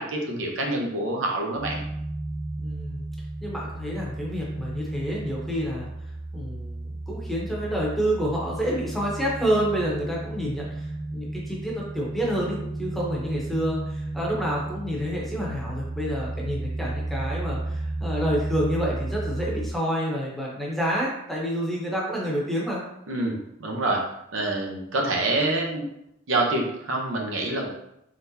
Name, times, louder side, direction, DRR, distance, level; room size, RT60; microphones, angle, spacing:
voice 1, 0.0-1.8 23.1-24.0 24.3-25.9 26.3-27.7, right 2 dB, 70° right, 0 dB, 0.7 m, -26 dB
sound 1, 1.6-19.7, right 2 dB, 40° right, 0.6 m, -33 dB
voice 2, 2.6-3.0 3.4-5.9 6.3-22.8, equal, ahead, -4 dB, 0.9 m, -28 dB
3.9 x 3.4 x 2.7 m, 0.78 s
head